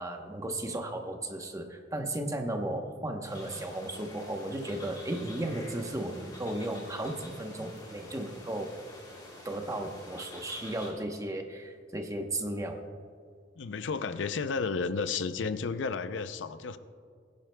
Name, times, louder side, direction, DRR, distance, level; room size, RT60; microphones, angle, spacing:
voice 1, 0.0-8.8 9.4-12.8, right 1 dB, 20° right, 4 dB, 0.9 m, -35 dB
sound 1, 3.3-10.9, left 1 dB, 25° left, 2.8 m, -48 dB
voice 2, 13.6-16.8, left 5 dB, 75° left, 12 dB, 0.5 m, -32 dB
21.0 x 10.5 x 2.2 m, 2.1 s
head